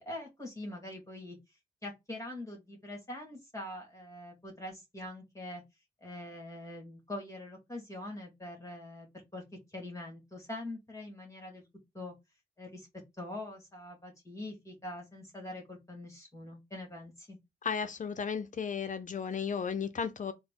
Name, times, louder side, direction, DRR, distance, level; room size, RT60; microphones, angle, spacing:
voice 1, 0.0-5.6 6.0-9.1 9.3-11.6 11.9-12.1 12.6-12.9 13.2-17.4, left 1 dB, 20° left, 1.6 m, -44 dB
voice 2, 17.6-20.3, left 6 dB, 50° left, 0.6 m, -34 dB
4.0 x 2.1 x 3.6 m
cardioid pair, 95°, 17 cm